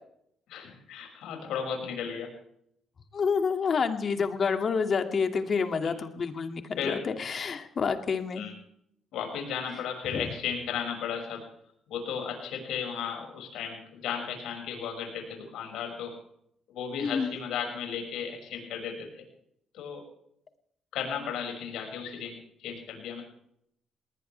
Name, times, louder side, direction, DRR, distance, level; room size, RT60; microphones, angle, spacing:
voice 1, 0.5-2.3 6.8-7.0 8.4-8.5 9.1-11.4 11.9-16.1 16.7-19.2 19.7-20.0 20.9-22.3 22.6-23.2, left 7 dB, 85° left, 2 dB, 6.0 m, -35 dB
voice 2, 3.1-8.4 17.0-17.3, left 5 dB, 50° left, 6 dB, 2.3 m, -28 dB
20.0 x 20.0 x 3.4 m, 0.71 s
cardioid pair, 90°, 0 cm